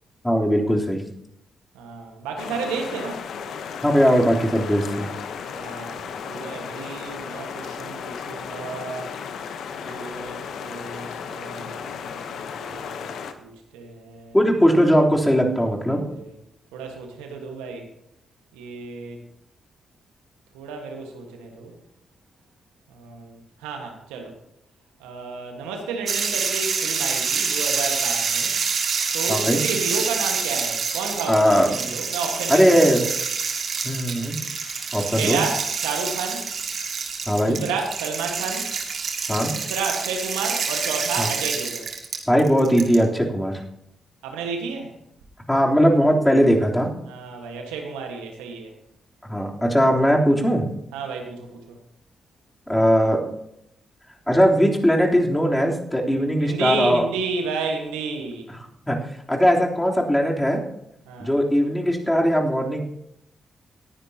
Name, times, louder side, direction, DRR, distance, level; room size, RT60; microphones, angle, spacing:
voice 1, 0.2-1.0 3.8-5.1 14.3-16.0 29.3-29.6 31.3-31.7 32.5-33.0 33.8-34.4 34.9-35.4 37.3-37.6 39.3-39.5 41.2-41.3 42.3-43.5 45.5-46.9 49.2-50.6 52.7-53.2 54.3-57.0 58.9-59.0 59.3-60.6 61.2-62.8, equal, 10° left, -1 dB, 3.4 m, -19 dB
voice 2, 1.7-3.2 5.5-9.1 9.8-14.4 16.0-16.4 16.7-17.9 18.5-19.2 20.5-21.7 22.9-24.3 25.0-28.6 29.1-33.1 35.1-36.4 37.4-38.7 39.5-41.9 44.2-44.9 47.0-48.7 50.9-51.8 56.4-58.5 61.0-61.3, right 4 dB, 90° right, 3 dB, 1.5 m, -32 dB
sound 1, 2.4-13.3, left 6 dB, 75° left, 0.9 m, -35 dB
sound 2, 26.1-43.0, right 5 dB, 65° right, 2.1 m, -27 dB
19.0 x 10.5 x 2.9 m, 0.78 s
hypercardioid pair, 40°, 0 cm